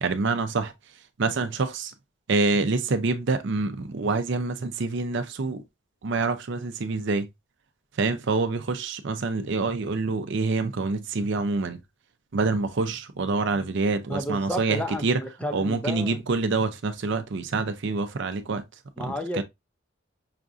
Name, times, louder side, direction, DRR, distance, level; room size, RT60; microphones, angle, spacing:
voice 1, 0.0-0.7 1.2-1.9 2.3-5.6 6.0-7.3 8.0-11.8 12.3-15.2 15.5-18.6 19.0-19.4, right 3 dB, 60° right, 0.5 m, -26 dB
voice 2, 14.1-16.2 19.0-19.4, left 1 dB, 5° left, 0.4 m, -32 dB
5.7 x 2.5 x 2.4 m
head